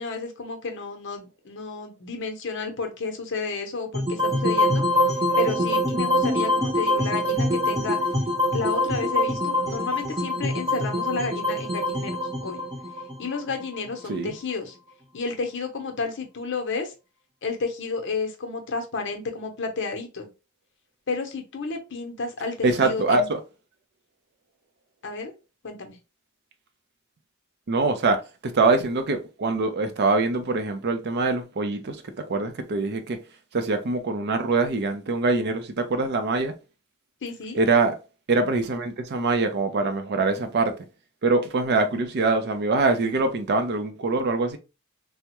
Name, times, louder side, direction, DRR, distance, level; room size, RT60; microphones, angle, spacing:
voice 1, 0.0-4.8 5.4-8.0 8.5-12.7 13.2-14.8 15.1-16.9 17.4-20.3 21.1-23.3 25.0-25.3 25.6-26.0 37.2-37.6, left 4 dB, 60° left, 0.7 m, -31 dB
sound 1, 3.9-14.1, left 1 dB, 15° right, 0.8 m, -24 dB
voice 2, 22.6-23.4 27.7-33.2 33.5-36.5 37.5-38.0 38.3-40.9 41.2-44.6, right 3 dB, 50° right, 0.5 m, -24 dB
3.4 x 2.1 x 2.9 m
head